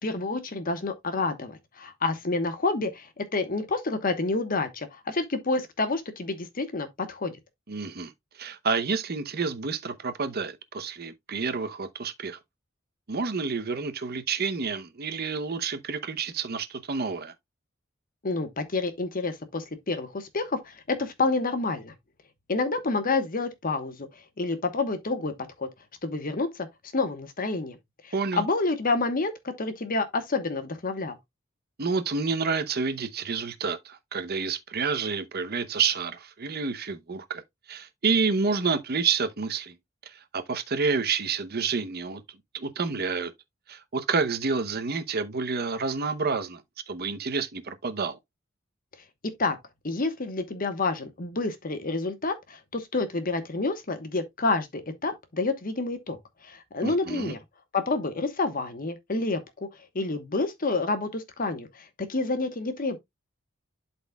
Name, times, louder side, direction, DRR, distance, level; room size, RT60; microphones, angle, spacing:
voice 1, 0.0-7.4 18.2-21.9 22.5-24.1 24.4-25.3 25.6-25.7 26.0-26.7 26.9-27.8 28.0-31.2 49.4-49.6 49.8-56.2 56.4-57.4 57.7-59.4 59.9-63.0, left 3 dB, 45° left, 1.1 m, -28 dB
voice 2, 7.7-8.1 8.4-12.4 13.1-17.3 28.1-28.4 31.8-37.4 37.7-39.7 40.1-42.2 42.5-43.3 43.7-46.6 46.9-48.2 56.8-57.3, right 5 dB, 50° right, 0.8 m, -29 dB
11.5 x 4.2 x 2.3 m
head